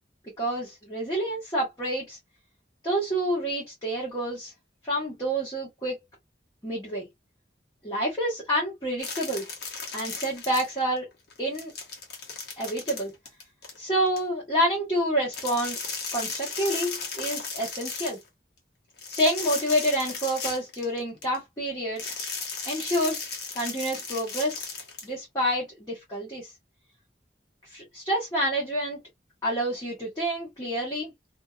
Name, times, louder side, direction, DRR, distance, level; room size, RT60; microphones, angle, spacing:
voice 1, 0.4-2.2 2.8-4.5 4.8-6.0 6.6-7.1 7.8-9.5 9.9-11.1 11.4-11.7 12.6-13.1 13.8-15.8 16.1-18.2 19.1-22.1 22.6-24.7 25.0-26.5 27.7-29.0 29.4-31.1, equal, 20° left, 1.3 m, -28 dB
sound 1, 9.0-11.0 11.3-14.2 15.3-18.2 19.0-21.4 22.0-25.1, left 5 dB, 65° left, 1.2 m, -36 dB
2.7 x 2.6 x 2.3 m
head